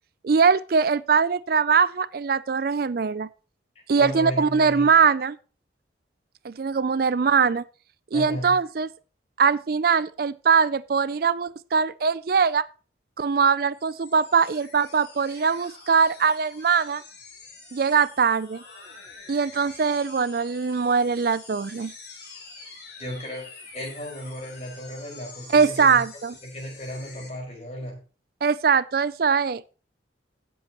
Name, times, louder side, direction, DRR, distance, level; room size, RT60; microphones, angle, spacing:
voice 1, 0.2-3.3 3.9-5.4 6.4-7.6 8.1-8.9 9.4-12.6 13.2-17.0 17.7-18.6 19.3-21.9 25.5-26.3 28.4-29.7, right 5 dB, 50° right, 0.4 m, -22 dB
voice 2, 4.0-5.0 8.1-8.6 23.0-26.0 26.4-28.0, equal, 35° left, 5.2 m, -35 dB
sound 1, 13.7-27.3, left 4 dB, 55° left, 4.2 m, -46 dB
16.5 x 7.8 x 3.0 m
head